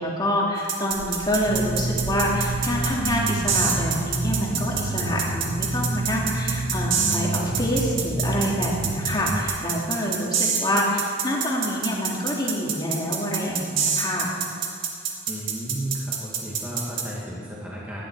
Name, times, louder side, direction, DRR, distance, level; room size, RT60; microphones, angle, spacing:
voice 1, 0.0-14.3, equal, 20° left, -3 dB, 2.1 m, -26 dB
sound 1, 0.7-17.1, right 7 dB, 70° right, 1.7 m, -26 dB
sound 2, 0.9-3.7, right 1 dB, 45° right, 0.9 m, -40 dB
sound 3, 1.5-9.5, right 2 dB, 90° right, 1.4 m, -29 dB
voice 2, 15.3-18.0, right 1 dB, 5° right, -7 dB, 1.7 m, -33 dB
16.5 x 11.0 x 4.5 m, 2.4 s
head